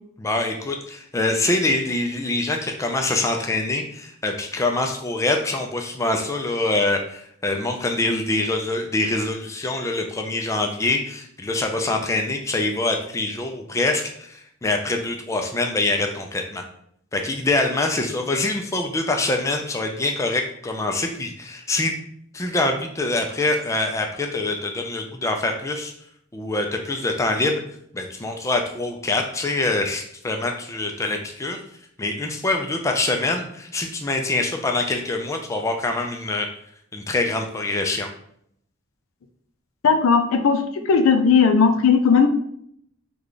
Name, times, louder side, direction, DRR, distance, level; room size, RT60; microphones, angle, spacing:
voice 1, 0.2-16.6 17.1-21.9 22.3-25.9 26.3-27.6 27.9-31.6 32.0-36.5 36.9-38.1, left 2 dB, 15° left, 3 dB, 0.3 m, -24 dB
voice 2, 39.8-42.3, left 5 dB, 85° left, 7 dB, 0.4 m, -17 dB
3.2 x 2.3 x 3.8 m, 0.69 s
head